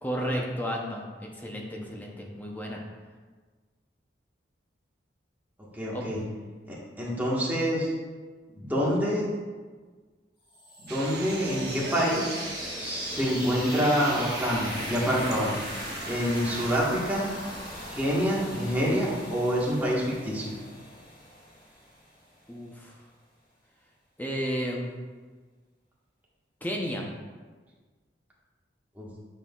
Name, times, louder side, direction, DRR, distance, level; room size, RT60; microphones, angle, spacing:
voice 1, 0.0-2.8 5.9-6.1 22.5-22.9 24.2-24.9 26.6-27.1, equal, 10° left, -1 dB, 0.7 m, -32 dB
voice 2, 5.7-6.2 6.7-7.9 8.6-9.2 10.8-12.3 12.8-15.5 16.0-17.2 17.9-20.5 29.0-29.1, equal, 10° right, -6 dB, 1.4 m, -27 dB
sound 1, 10.5-22.2, equal, 30° left, 2.0 m, -39 dB
sound 2, 10.9-16.8, right 3 dB, 65° right, 0.9 m, -40 dB
8.7 x 5.4 x 2.4 m, 1.4 s
head